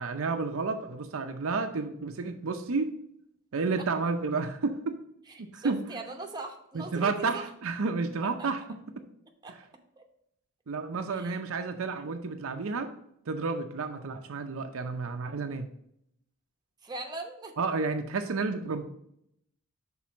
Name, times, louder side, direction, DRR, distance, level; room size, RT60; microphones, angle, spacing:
voice 1, 0.0-2.9 3.5-5.0 5.4-5.8 6.7-8.6 9.0-9.1 10.7-12.9 13.3-15.7 17.6-18.8, right 4 dB, 65° right, 6 dB, 0.6 m, -31 dB
voice 2, 5.3-7.5 8.2-8.5 9.4-9.5 10.0-10.1 11.1-11.4 16.8-17.5, right 3 dB, 20° right, 2 dB, 0.9 m, -41 dB
5.8 x 4.0 x 6.1 m, 0.74 s
head